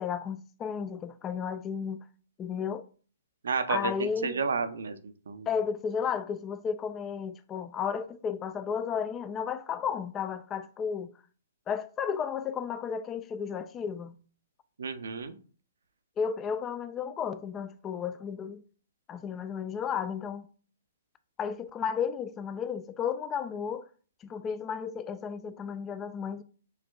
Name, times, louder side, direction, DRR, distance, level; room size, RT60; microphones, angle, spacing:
voice 1, 0.0-2.0 2.4-2.9 3.7-4.4 5.5-11.1 11.7-14.2 16.2-18.6 19.1-20.5 21.4-23.9 24.2-26.4, left 7 dB, 20° left, 0.3 m, -33 dB
voice 2, 3.4-5.5 14.8-15.4, right 5 dB, 70° right, 0.5 m, -32 dB
6.4 x 2.4 x 2.2 m
figure-of-eight pair, 125°, 0 cm